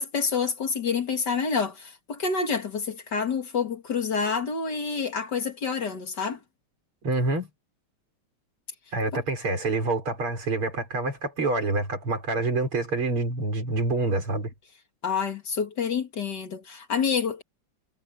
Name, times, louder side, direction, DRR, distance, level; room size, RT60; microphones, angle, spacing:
voice 1, 0.0-6.4 15.0-17.4, left 5 dB, 50° left, 2.5 m, -28 dB
voice 2, 7.0-7.5 8.9-14.5, right 2 dB, 75° right, 6.4 m, -27 dB
omnidirectional pair, 2.4 m